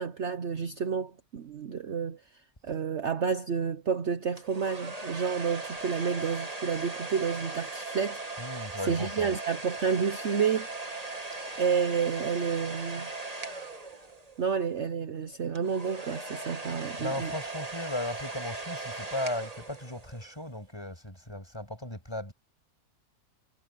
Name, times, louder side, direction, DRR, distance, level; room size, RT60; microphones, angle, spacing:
voice 1, 0.0-2.2 2.6-8.2 8.8-10.7 11.6-13.1 14.4-17.3, right 6 dB, 50° right, 1.1 m, -30 dB
sound 1, 4.4-14.5 15.5-20.3, right 3 dB, 25° right, 1.8 m, -39 dB
voice 2, 8.4-9.3 17.0-22.3, left 1 dB, 15° left, 6.7 m, -36 dB
omnidirectional pair, 1.6 m